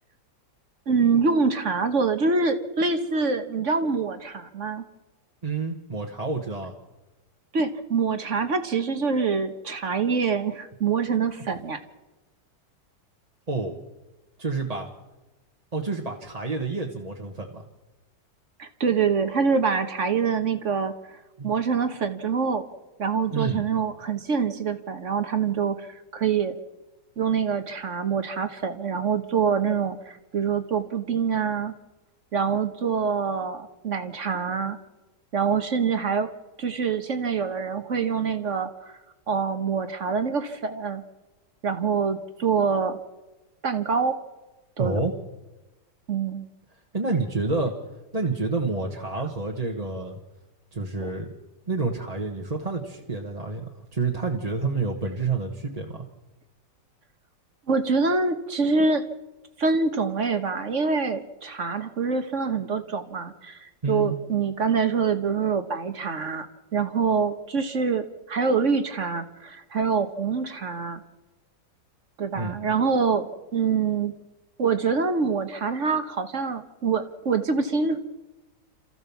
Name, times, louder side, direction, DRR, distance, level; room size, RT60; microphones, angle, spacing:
voice 1, 0.9-4.8 7.5-11.8 18.6-21.2 21.4-22.7 23.0-26.6 27.2-31.7 32.3-34.8 35.3-36.3 36.6-39.0 39.3-41.0 41.6-43.0 43.6-44.2 44.8-45.0 46.1-46.4 51.0-51.1 57.7-59.1 59.6-71.0 72.2-74.1 74.6-78.0, right 5 dB, 45° right, 9 dB, 1.4 m, -25 dB
voice 2, 5.4-6.7 13.5-13.8 14.4-14.9 15.7-17.6 21.4-21.5 23.3-23.6 44.8-45.1 46.9-47.7 48.1-50.2 50.7-51.3 51.7-53.6 53.9-56.0 63.8-64.1 72.3-72.5, right 3 dB, 25° right, 1 dB, 1.3 m, -28 dB
27.0 x 14.5 x 7.1 m, 1.1 s
omnidirectional pair, 1.9 m